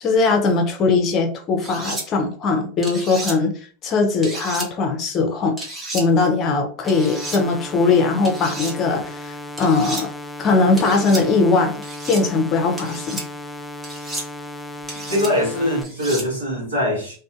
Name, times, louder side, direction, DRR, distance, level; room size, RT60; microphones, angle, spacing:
voice 1, 0.0-3.5 3.8-5.6 5.9-10.1 10.4-11.8 12.1-13.2, left 3 dB, 40° left, 4 dB, 0.7 m, -20 dB
sound 1, 1.6-2.0 2.8-3.3 4.2-4.7 5.6-6.0 6.9-7.4 8.2-8.7 9.6-10.0 10.8-11.2 11.8-12.2 12.8-13.2 13.8-14.3 14.9-15.3 15.8-16.3, right 2 dB, 20° right, 1.0 m, -32 dB
sound 2, 6.8-15.8, left 1 dB, 10° left, 0.3 m, -35 dB
voice 2, 15.1-17.1, left 1 dB, 85° right, -9 dB, 1.1 m, -22 dB
2.7 x 2.6 x 2.4 m, 0.42 s
hypercardioid pair, 85°, 0 cm